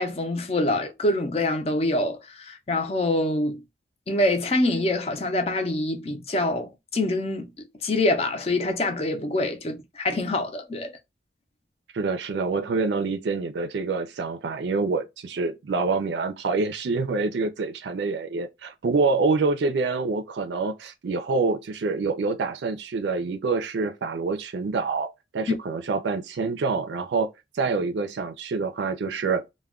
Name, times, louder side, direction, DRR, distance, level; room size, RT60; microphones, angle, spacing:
voice 1, 0.0-3.6 4.1-7.5 7.8-11.0, left 2 dB, 35° left, 0.5 m, -25 dB
voice 2, 11.9-25.1 25.3-27.3 27.5-29.4, right 4 dB, 75° right, 0.4 m, -26 dB
2.3 x 2.1 x 3.4 m
head